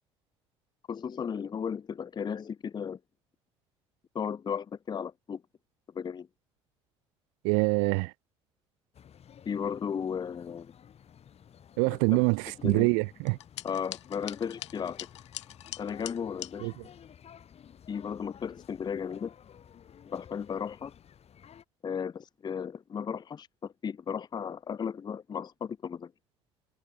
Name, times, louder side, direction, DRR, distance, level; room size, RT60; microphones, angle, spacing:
voice 1, 0.9-3.0 4.1-5.4 5.9-6.3 9.5-10.7 11.9-12.2 12.6-12.9 13.6-15.0 15.8-16.7 17.9-19.3 20.1-20.9 21.8-26.1, left 7 dB, 30° left, 0.6 m, -35 dB
voice 2, 7.4-8.1 11.8-13.4 16.6-16.7, right 40 dB or more, 70° right, 0.5 m, -25 dB
sound 1, 8.9-21.6, left 8 dB, 45° left, 3.5 m, -53 dB
sound 2, 13.3-16.5, left 14 dB, 80° left, 0.6 m, -43 dB
hypercardioid pair, 55°, 15 cm